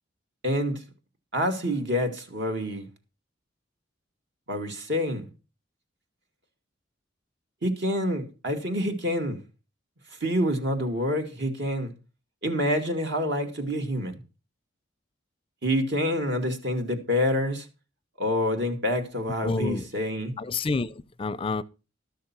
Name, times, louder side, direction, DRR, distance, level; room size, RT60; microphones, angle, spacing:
voice 1, 0.4-0.8 1.3-2.9 4.5-5.3 7.6-9.4 10.2-11.9 12.4-14.2 15.6-17.7 18.2-20.3, equal, 60° right, 2.2 m, -27 dB
voice 2, 19.4-19.9 20.4-21.6, left 3 dB, 30° left, 0.5 m, -29 dB
12.5 x 6.5 x 5.9 m
head